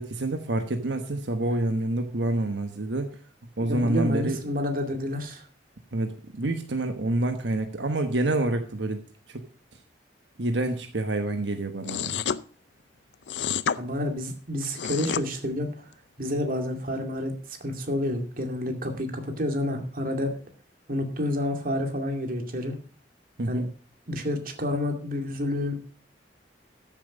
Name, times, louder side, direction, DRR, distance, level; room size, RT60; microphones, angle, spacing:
voice 1, 0.0-3.1 3.6-4.4 5.9-9.0 9.3-9.4 10.4-12.2 23.4-23.7, right 2 dB, 90° right, 6 dB, 1.2 m, -27 dB
voice 2, 3.6-5.5 13.8-15.9 16.2-20.4 20.9-22.7 23.5-23.6 24.1-25.8, left 1 dB, 50° right, 4 dB, 2.4 m, -29 dB
sound 1, 11.8-12.4 13.3-13.8 14.6-15.2, left 7 dB, 80° left, 0.5 m, -28 dB
13.5 x 7.4 x 5.2 m, 0.39 s
head